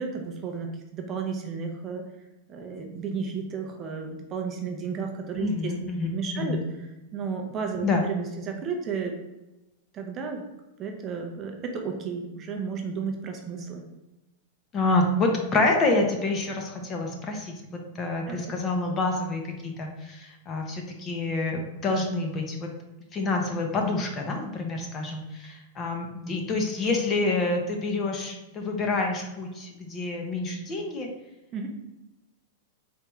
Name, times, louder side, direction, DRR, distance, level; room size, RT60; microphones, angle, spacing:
voice 1, 0.0-2.0 2.5-9.2 9.9-10.4 10.8-13.8 18.3-18.6 31.5-31.7, right 5 dB, 25° right, 3 dB, 0.5 m, -33 dB
voice 2, 5.4-6.1 6.5-6.6 7.8-8.0 14.7-22.7 23.1-31.1, left 2 dB, 20° left, 2 dB, 0.6 m, -27 dB
4.6 x 3.4 x 3.0 m, 1.0 s
supercardioid pair, 160°, 0 cm